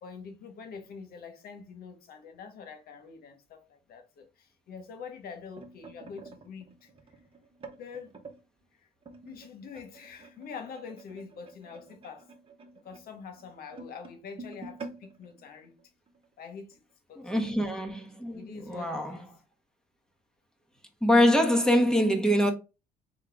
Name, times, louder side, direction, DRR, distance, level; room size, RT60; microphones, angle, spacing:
voice 1, 0.0-6.9 7.8-8.1 8.7-8.9 9.2-12.3 12.8-15.8 16.4-16.8 17.1-17.4 18.3-19.3, left 6 dB, 60° left, 1.3 m, -45 dB
sound 1, 5.1-8.4 9.0-16.3 16.7-16.9 17.2-17.5 18.2-18.3, right 3 dB, 35° right, 1.1 m, -49 dB
voice 2, 17.2-19.2 21.0-22.5, equal, 5° left, 1.1 m, -24 dB
3.9 x 3.6 x 3.5 m
cardioid pair, 110°, 17 cm